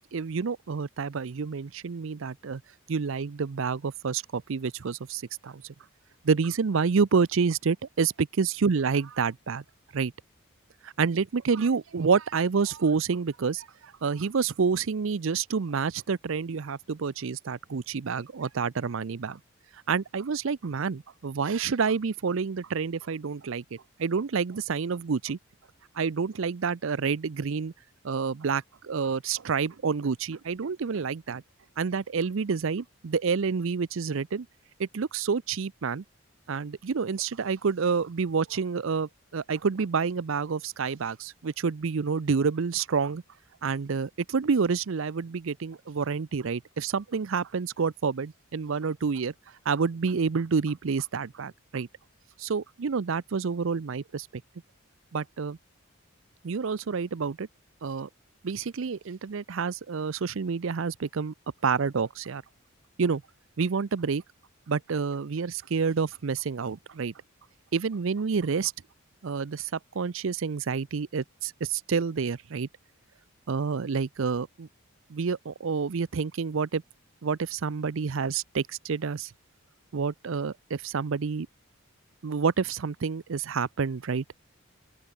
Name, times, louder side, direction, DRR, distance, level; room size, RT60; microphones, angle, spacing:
voice 1, 0.0-2.6 2.9-5.6 6.2-9.6 9.9-10.1 10.8-13.7 14.0-19.4 19.9-25.4 26.0-27.7 28.0-31.4 31.8-34.5 34.8-36.0 36.5-43.2 43.6-49.3 49.7-51.9 52.4-54.4 55.1-55.6 56.4-57.5 57.8-58.1 58.4-61.3 61.6-62.4 63.0-63.2 63.6-64.2 64.7-67.1 67.7-68.7 69.2-72.7 73.5-74.7 75.1-76.8 77.2-79.3 79.9-81.5 82.2-84.2, right 5 dB, 65° right, 0.5 m, -28 dB
open air
head